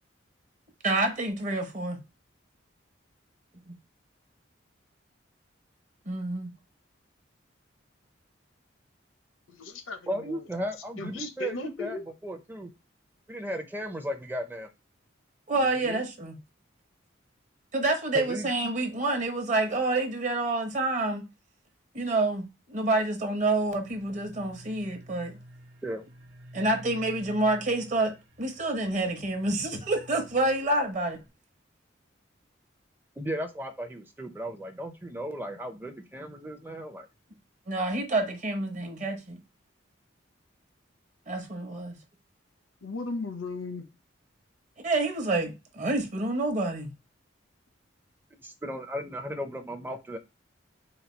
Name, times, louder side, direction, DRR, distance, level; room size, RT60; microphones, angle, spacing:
voice 1, 0.8-2.0 3.7-3.8 6.1-6.5 15.5-16.4 17.7-21.3 21.9-25.4 26.5-31.2 37.7-39.4 41.3-42.0 44.8-46.9, right 2 dB, 40° right, 0.8 m, -28 dB
voice 2, 9.5-10.4 11.0-12.1 15.5-16.0 42.8-43.9, left 3 dB, 90° left, 0.7 m, -37 dB
voice 3, 10.1-12.0 12.2-12.7 13.3-14.7 18.1-18.5 25.8-26.0 33.2-37.1 48.4-50.2, equal, 10° right, 0.5 m, -35 dB
sound 1, 23.4-31.3, equal, 65° right, 1.0 m, -50 dB
4.1 x 2.2 x 4.3 m
head